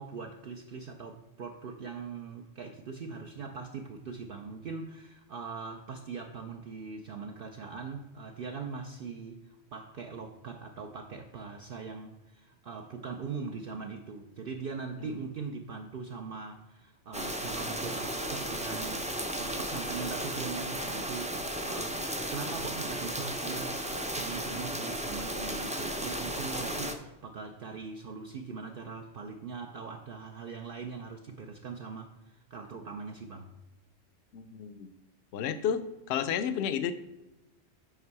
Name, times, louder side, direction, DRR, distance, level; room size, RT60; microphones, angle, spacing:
voice 1, 0.0-22.0 22.3-23.8 24.2-33.5, right 5 dB, 55° right, 3 dB, 0.7 m, -41 dB
sound 1, 17.1-26.9, right 1 dB, 10° right, 0.3 m, -34 dB
voice 2, 34.3-34.9 35.3-35.8 36.1-36.9, left 8 dB, 65° left, 11 dB, 0.8 m, -31 dB
8.1 x 5.4 x 4.7 m, 0.98 s
omnidirectional pair, 1.3 m